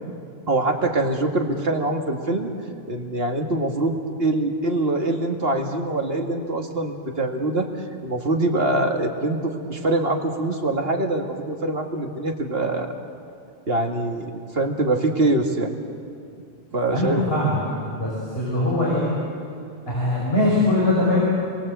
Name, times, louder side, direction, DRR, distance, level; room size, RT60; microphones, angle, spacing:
voice 1, 0.5-2.5 2.9-7.7 8.0-12.9 13.7-15.8 16.7-17.4, right 2 dB, 65° right, 2 dB, 2.4 m, -24 dB
voice 2, 16.9-17.6 17.9-19.1 19.9-21.2, left 1 dB, 65° left, -6 dB, 6.5 m, -21 dB
28.0 x 23.0 x 8.2 m, 2.5 s
omnidirectional pair, 1.1 m